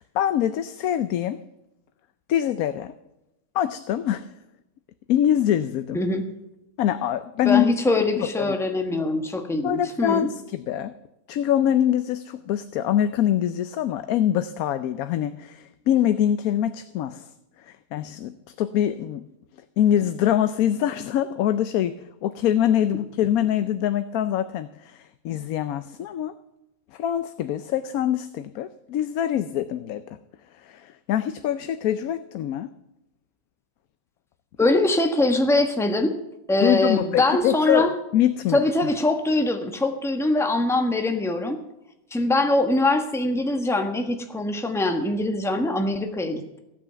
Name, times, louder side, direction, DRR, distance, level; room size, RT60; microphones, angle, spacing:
voice 1, 0.0-1.4 2.3-2.9 3.5-4.3 5.1-6.0 6.8-7.7 8.2-8.5 9.6-10.9 11.3-17.3 17.6-19.2 19.8-21.9 22.2-26.3 26.9-30.2 30.6-32.7 36.6-38.6, left 11 dB, 85° left, 11 dB, 1.1 m, -24 dB
voice 2, 5.9-6.3 7.4-10.3 34.6-36.1 36.5-37.9 38.5-41.6 42.1-46.6, left 2 dB, ahead, 5 dB, 1.2 m, -23 dB
15.5 x 9.0 x 6.9 m, 0.89 s
omnidirectional pair, 1.5 m